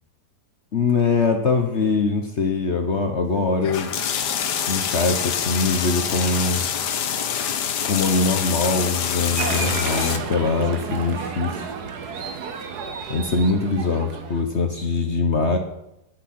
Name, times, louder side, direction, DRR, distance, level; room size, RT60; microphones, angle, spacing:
voice 1, 0.7-3.9 4.7-6.6 7.8-11.7 13.1-15.6, left 4 dB, 45° left, 5 dB, 1.2 m, -22 dB
sound 1, 3.6-10.2, left 8 dB, 85° left, 1.6 m, -26 dB
Applause, 9.4-14.4, right 5 dB, 75° right, 1.7 m, -31 dB
10.5 x 10.5 x 6.0 m, 0.85 s
omnidirectional pair, 1.7 m